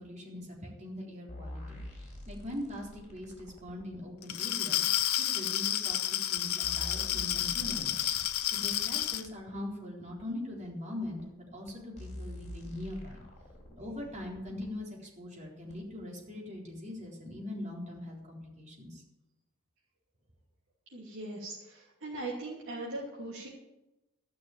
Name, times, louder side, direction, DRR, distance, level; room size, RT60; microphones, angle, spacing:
voice 1, 0.0-4.9 5.2-13.2 13.8-14.9 15.2-19.0, left 1 dB, 35° right, -2 dB, 4.1 m, -42 dB
sound 1, 1.3-4.0 5.0-5.1 5.9-6.0 6.4-9.3 10.2-10.3 11.2-11.3 11.7-11.8 12.0-14.7 15.7-15.8, left 1 dB, 35° left, 3.6 m, -46 dB
Glass, 4.2-9.3, left 12 dB, 70° left, 0.8 m, -31 dB
voice 2, 20.9-23.5, right 2 dB, 60° right, -5 dB, 3.0 m, -40 dB
14.5 x 6.4 x 9.3 m, 0.99 s
head